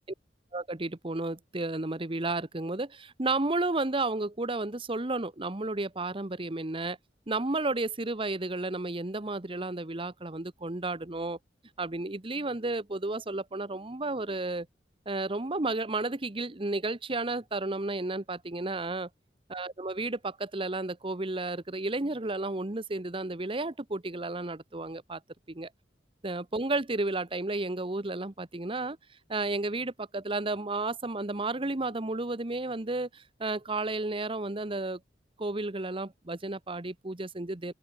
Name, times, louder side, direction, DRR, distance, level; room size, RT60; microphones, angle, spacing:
voice 1, 0.5-7.0 7.3-11.4 11.8-14.7 15.1-19.1 19.5-25.2 25.5-25.7 26.2-29.0 29.3-35.0 35.4-37.7, right 2 dB, 30° right, 1.1 m, -32 dB
head